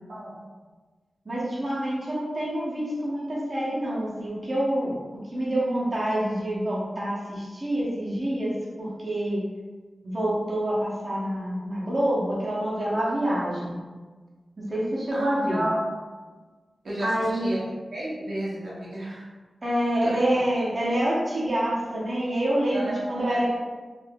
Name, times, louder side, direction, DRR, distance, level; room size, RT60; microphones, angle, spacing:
voice 1, 0.1-0.4 15.1-15.9 16.8-17.1 17.4-17.6 17.9-19.3 20.0-20.2 20.6-20.7 22.7-23.6, right 1 dB, 70° right, -7 dB, 0.8 m, -32 dB
voice 2, 1.3-5.0 5.3-9.4 10.0-13.8 14.6-15.6 17.0-17.5 19.6-23.6, right 1 dB, 35° right, -7 dB, 0.8 m, -27 dB
3.4 x 2.5 x 2.3 m, 1.3 s
wide cardioid pair, 95°, 0 cm